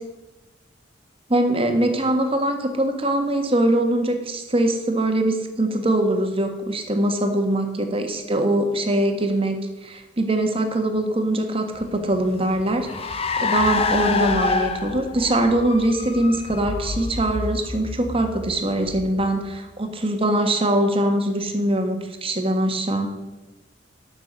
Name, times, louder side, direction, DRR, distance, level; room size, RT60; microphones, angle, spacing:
voice 1, 1.3-23.1, right 1 dB, 30° right, 5 dB, 1.5 m, -22 dB
Car, 11.8-19.6, left 4 dB, 30° left, 0.8 m, -28 dB
12.5 x 6.0 x 8.1 m, 1.1 s
head